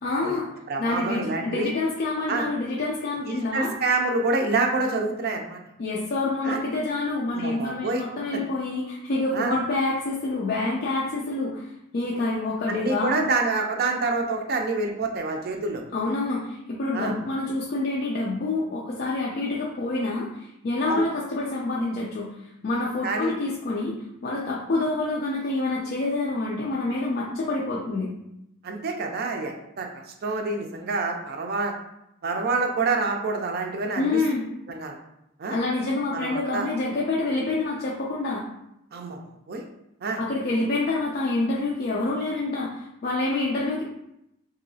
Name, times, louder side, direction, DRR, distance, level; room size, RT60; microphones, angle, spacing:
voice 1, 0.0-0.5 0.8-3.7 5.8-11.7 11.9-13.3 15.9-22.3 22.6-24.0 24.2-28.1 34.0-34.4 35.5-38.4 40.2-43.8, left 2 dB, 45° left, -4 dB, 0.4 m, -27 dB
voice 2, 0.7-1.7 2.3-2.5 3.3-5.6 6.4-6.6 7.3-8.0 9.3-9.6 12.7-15.8 16.9-17.1 20.9-21.1 23.0-23.3 28.6-31.7 32.2-34.2 34.7-35.0 35.4-35.6 36.1-36.7 38.9-39.2 39.5-39.6 40.0-40.2, right 3 dB, 45° right, 3 dB, 0.4 m, -27 dB
3.0 x 2.7 x 2.7 m, 0.83 s
head